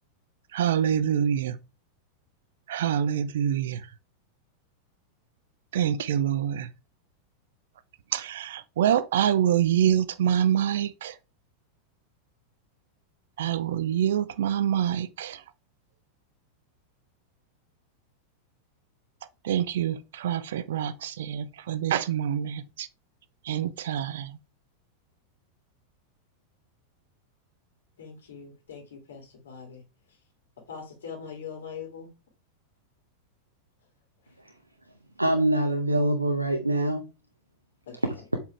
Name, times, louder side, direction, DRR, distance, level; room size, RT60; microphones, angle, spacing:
voice 1, 0.5-1.6 2.7-3.8 5.7-6.7 8.1-11.1 13.4-15.4 19.4-22.9 23.5-24.3, right 9 dB, 60° right, 0.7 m, -26 dB
voice 2, 28.0-29.8 30.7-32.1 37.9-38.0, left 6 dB, 60° left, 2.7 m, -41 dB
voice 3, 35.2-37.1 38.0-38.4, right 1 dB, 85° right, 1.0 m, -24 dB
7.4 x 5.2 x 4.6 m
figure-of-eight pair, 90°, 0 cm